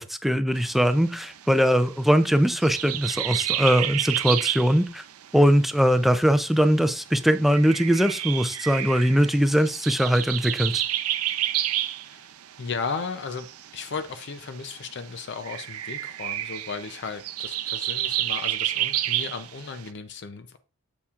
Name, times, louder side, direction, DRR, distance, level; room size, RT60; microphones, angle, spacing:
voice 1, 0.0-5.0 5.3-10.8, equal, ahead, 10 dB, 0.4 m, -21 dB
sound 1, 0.6-19.9, right 13 dB, 90° right, 0.5 m, -30 dB
voice 2, 12.6-13.5 13.7-20.6, left 5 dB, 55° left, 9 dB, 0.5 m, -35 dB
7.1 x 7.0 x 2.4 m, 0.32 s
head